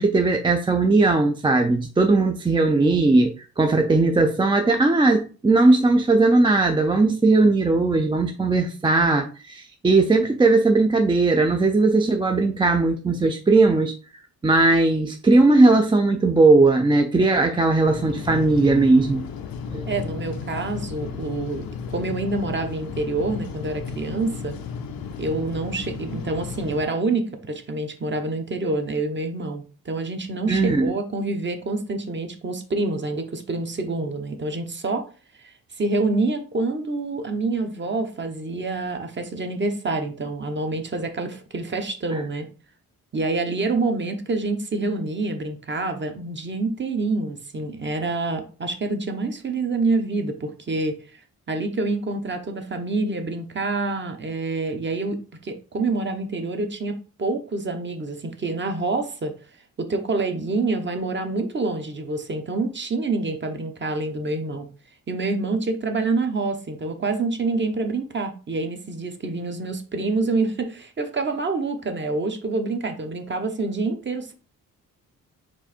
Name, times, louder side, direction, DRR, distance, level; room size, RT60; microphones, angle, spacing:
voice 1, 0.0-13.9 14.4-19.2 19.7-19.9 30.5-30.9 42.1-42.2, right 3 dB, 15° right, 0.4 m, -18 dB
sound 1, 17.8-26.9, left 6 dB, 85° left, 0.7 m, -34 dB
voice 2, 19.9-24.6 25.2-35.1 35.4-42.5 43.1-51.2 51.5-59.4 59.8-64.7 65.1-74.3, right 3 dB, 35° right, 0.9 m, -27 dB
4.6 x 2.6 x 4.3 m
cardioid pair, 90°, 34 cm